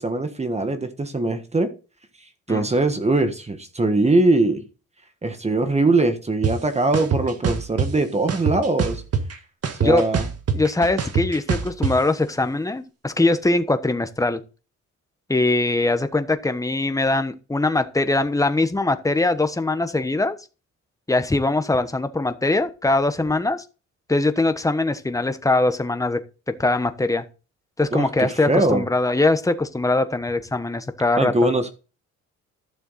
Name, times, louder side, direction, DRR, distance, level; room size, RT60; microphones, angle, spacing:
voice 1, 0.0-1.7 2.5-4.6 5.2-9.0 9.8-10.3 27.9-28.9 31.2-31.7, right 2 dB, 20° right, 1.5 m, -21 dB
sound 1, 6.4-6.5 6.9-7.9 8.3-9.4 9.6-11.9, right 6 dB, 55° right, 1.8 m, -23 dB
voice 2, 10.5-14.4 15.3-20.4 21.1-23.6 24.1-26.2 26.6-27.2 27.8-31.3, left 2 dB, 10° left, 1.1 m, -22 dB
12.5 x 6.8 x 4.2 m
cardioid pair, 90°, 30 cm